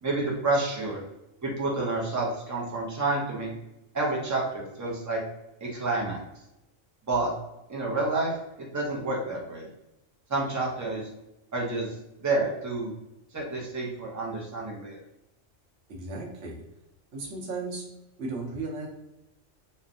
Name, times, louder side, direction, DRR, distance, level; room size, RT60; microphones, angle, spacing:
voice 1, 0.0-1.0 1.4-3.5 3.9-5.2 5.6-6.2 7.1-7.3 7.7-8.3 8.6-9.7 10.3-11.0 11.5-11.9 12.2-12.9 13.3-15.0, right 2 dB, 25° right, -3 dB, 0.4 m, -29 dB
voice 2, 15.9-16.6 17.1-17.8 18.2-18.9, right 3 dB, 65° right, -2 dB, 1.0 m, -35 dB
3.1 x 2.1 x 2.5 m, 0.91 s
omnidirectional pair, 1.3 m